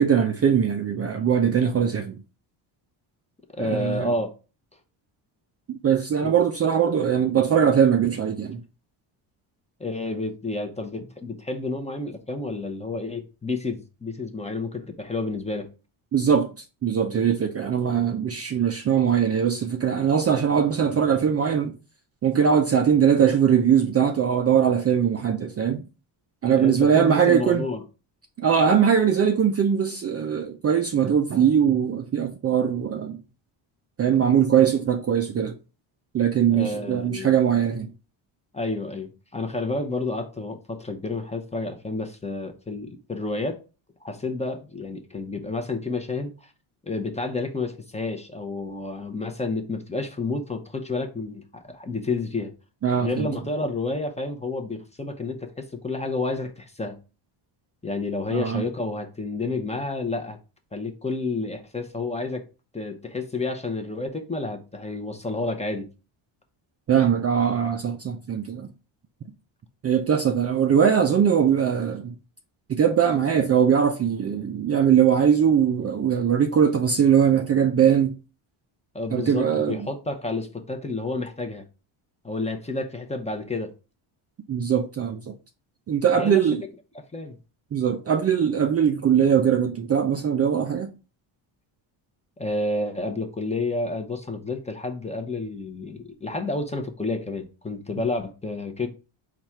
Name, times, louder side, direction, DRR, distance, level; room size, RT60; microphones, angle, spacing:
voice 1, 0.0-2.2 3.6-4.1 5.7-8.6 16.1-16.5 16.8-21.8 22.2-25.8 26.4-27.6 28.4-33.2 34.0-35.5 36.1-37.9 52.8-53.3 58.3-58.6 66.9-68.7 69.8-72.1 72.7-78.1 79.1-79.8 84.5-85.3 85.9-86.6 87.7-90.9, right 8 dB, 30° right, 0.4 m, -21 dB
voice 2, 3.6-4.3 6.2-6.3 9.8-15.7 26.5-27.8 36.5-37.3 38.5-43.6 44.0-46.5 46.8-52.5 53.0-57.0 57.8-60.4 60.7-62.5 62.7-65.9 78.9-81.6 82.2-83.7 86.1-86.4 86.9-87.4 92.4-98.9, left 3 dB, 15° left, 0.7 m, -30 dB
4.1 x 2.5 x 4.4 m
cardioid pair, 85°, 50 cm